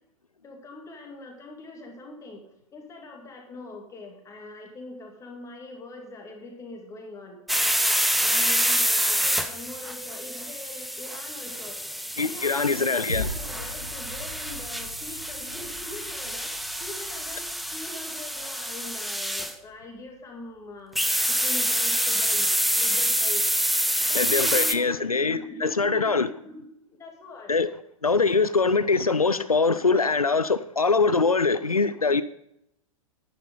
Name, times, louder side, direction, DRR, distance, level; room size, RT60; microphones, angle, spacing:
voice 1, 0.4-2.4 2.7-7.4 8.2-11.8 12.2-21.0 21.3-22.5 22.8-23.5 24.1-27.7, left 2 dB, 15° left, 2.7 m, -42 dB
sound 1, 7.5-19.5 21.0-24.7, equal, ahead, 0.6 m, -27 dB
voice 2, 12.2-13.3 24.1-26.3 27.5-27.7 28.0-32.2, left 4 dB, 85° left, 0.5 m, -23 dB
sound 2, 13.1-21.6 22.1-22.2, equal, 90° right, 2.8 m, -41 dB
11.5 x 9.3 x 5.5 m
figure-of-eight pair, 105°, 18 cm